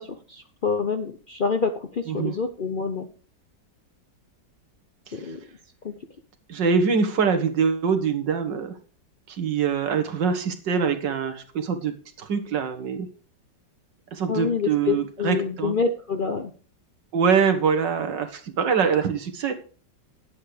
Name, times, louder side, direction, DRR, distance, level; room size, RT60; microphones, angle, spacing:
voice 1, 0.0-3.1 5.1-5.5 5.8-6.0 14.3-16.5, left 5 dB, 50° left, 6 dB, 0.6 m, -27 dB
voice 2, 6.5-8.8 9.3-13.1 14.1-15.8 17.1-19.5, right 6 dB, 80° right, 8 dB, 2.1 m, -24 dB
9.9 x 8.6 x 4.9 m, 0.39 s
omnidirectional pair, 1.9 m